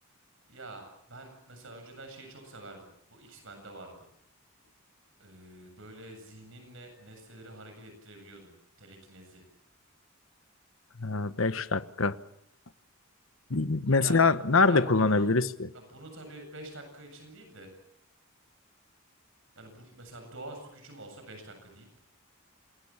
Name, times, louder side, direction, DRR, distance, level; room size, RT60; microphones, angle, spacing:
voice 1, 0.5-4.1 5.2-8.5 8.8-9.4 14.0-14.3 14.6-15.3 15.7-17.7 19.5-22.0, right 2 dB, 65° right, 7.9 m, -47 dB
voice 2, 11.0-12.2 13.5-15.5, left 3 dB, 70° left, 1.2 m, -24 dB
27.5 x 22.0 x 7.3 m
head